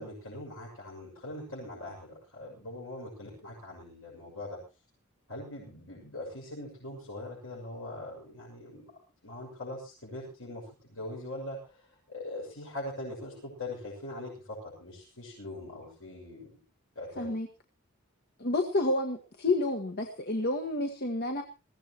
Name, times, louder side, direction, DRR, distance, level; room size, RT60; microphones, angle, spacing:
voice 1, 0.0-4.6 5.3-8.9 9.2-10.6 10.9-11.8 12.1-16.6 16.9-17.3, left 1 dB, 65° left, -5 dB, 6.7 m, -42 dB
voice 2, 17.2-17.5 18.4-21.4, left 2 dB, 50° left, 4 dB, 1.5 m, -29 dB
21.5 x 15.5 x 3.0 m, 0.31 s
head